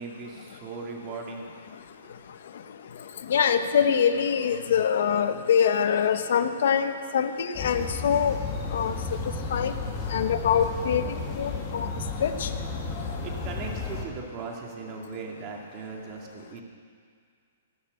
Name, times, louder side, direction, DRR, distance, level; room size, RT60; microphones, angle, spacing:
voice 1, 0.0-1.5 13.2-16.6, right 4 dB, 30° right, 0 dB, 2.2 m, -38 dB
voice 2, 3.2-8.4 8.7-8.9 9.5-9.7 10.1-11.0 11.4-11.9 12.2-12.5, left 7 dB, 70° left, 9 dB, 1.0 m, -24 dB
sound 1, 7.5-14.0, left 4 dB, 30° left, 2.1 m, -33 dB
18.0 x 7.1 x 7.8 m, 2.2 s
hypercardioid pair, 155°, 0 cm